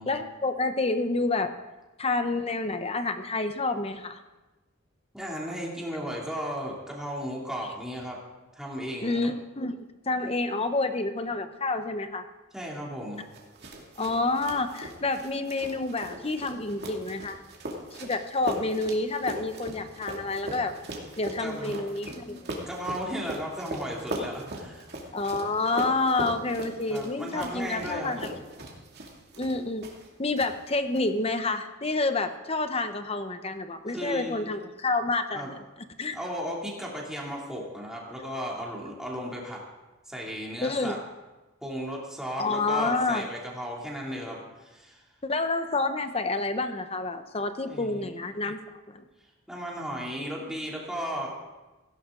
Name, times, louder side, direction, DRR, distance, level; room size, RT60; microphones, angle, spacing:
voice 1, 0.1-1.5 2.0-4.2 9.0-9.8 10.1-12.2 14.0-17.4 17.9-20.7 21.2-22.7 25.1-28.3 29.4-29.9 30.2-35.6 36.0-36.2 40.6-41.0 42.4-43.2 45.2-48.6 48.9-49.0, left 3 dB, 30° left, 9 dB, 0.9 m, -28 dB
voice 2, 5.1-8.2 8.5-9.3 12.5-13.2 21.4-21.8 22.2-22.4 22.7-24.9 26.9-28.3 33.9-34.5 35.3-35.5 36.1-39.6 40.1-41.0 41.6-45.0 47.6-48.1 49.5-51.3, equal, 5° right, -3 dB, 2.8 m, -35 dB
sound 1, 13.3-30.1 30.4-31.0, right 1 dB, 50° right, 2.4 m, -39 dB
17.0 x 16.0 x 3.9 m, 1.1 s
head